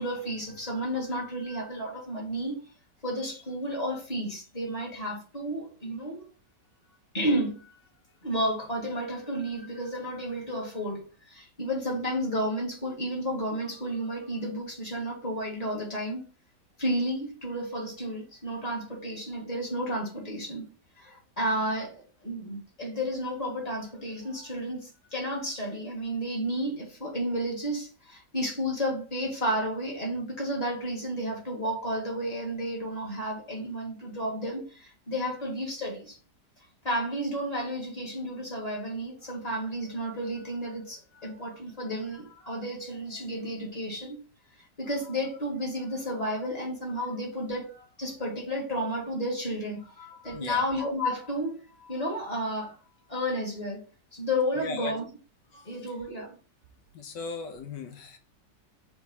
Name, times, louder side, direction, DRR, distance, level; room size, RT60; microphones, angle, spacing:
voice 1, 0.0-2.6 3.0-6.3 7.1-7.8 8.2-16.2 16.8-20.6 21.0-36.2 36.8-44.2 44.6-52.8 53.1-53.8 54.1-55.0 55.5-56.4, equal, 20° left, 2.2 m, -32 dB
voice 2, 50.3-50.6 54.6-54.9 55.5-55.9 56.9-58.2, left 4 dB, 85° left, 1.6 m, -38 dB
6.9 x 3.6 x 5.5 m
omnidirectional pair, 1.8 m